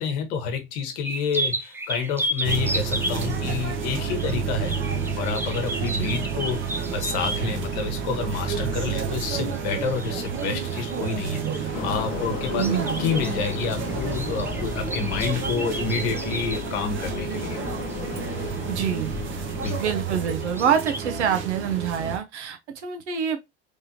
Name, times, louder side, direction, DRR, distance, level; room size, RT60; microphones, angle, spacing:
voice 1, 0.0-4.7 5.1-12.7 13.0-17.6 19.6-19.8, left 5 dB, 60° left, 1.1 m, -29 dB
sound 1, 1.0-7.6 9.2-11.8 12.4-18.6 18.9-19.2 19.5-19.9 20.4-21.0, right 1 dB, 5° right, 0.5 m, -34 dB
sound 2, 2.4-22.2, right 6 dB, 35° right, 0.9 m, -30 dB
sound 3, 11.7-19.8, left 10 dB, 35° left, 0.9 m, -36 dB
voice 2, 12.6-13.1 18.7-19.1 19.8-23.4, right 8 dB, 80° right, 0.8 m, -26 dB
3.4 x 3.3 x 2.8 m
hypercardioid pair, 75°, 34 cm